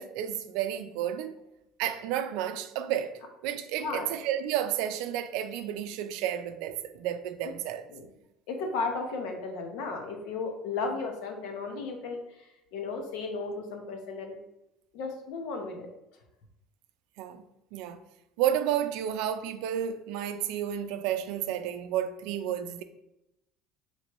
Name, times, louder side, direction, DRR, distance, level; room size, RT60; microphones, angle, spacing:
voice 1, 0.0-1.3 1.8-3.1 3.4-7.8 17.2-17.4 17.7-18.0 18.4-22.8, right 10 dB, 75° right, 0.4 m, -31 dB
voice 2, 3.8-4.1 7.4-7.5 7.9-8.1 8.5-14.4 14.9-15.9, left 4 dB, 80° left, 0.9 m, -35 dB
3.1 x 3.0 x 4.5 m
cardioid pair, 145°, 0 cm